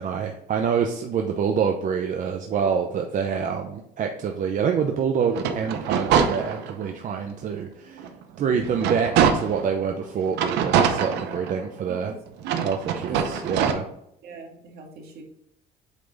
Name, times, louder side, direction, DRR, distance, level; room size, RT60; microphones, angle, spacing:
voice 1, 0.0-8.0 8.4-12.1 12.6-13.8, right 6 dB, 50° right, 3 dB, 0.7 m, -26 dB
sound 1, 5.3-6.9 7.4-7.5 8.0-9.7 10.3-11.8 12.4-13.7, right 7 dB, 90° right, 0.7 m, -24 dB
voice 2, 11.1-11.5 11.9-12.2 13.1-13.6 14.2-15.2, right 3 dB, 70° right, 0 dB, 1.9 m, -40 dB
8.2 x 3.4 x 4.0 m, 0.77 s
cardioid pair, 110°, 17 cm